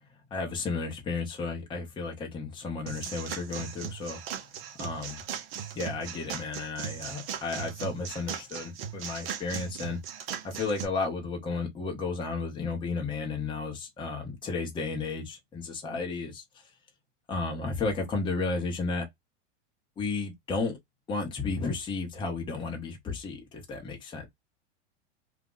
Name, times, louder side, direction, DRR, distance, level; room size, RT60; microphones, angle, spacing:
voice 1, 0.3-4.2 4.8-5.2 5.7-10.0 10.4-16.7 17.3-19.1 20.0-20.8 21.1-24.3, left 4 dB, 15° left, 0.8 m, -33 dB
sound 1, 2.9-10.8, right 9 dB, 55° right, 0.8 m, -38 dB
2.5 x 2.1 x 3.7 m
supercardioid pair, 135°, 35 cm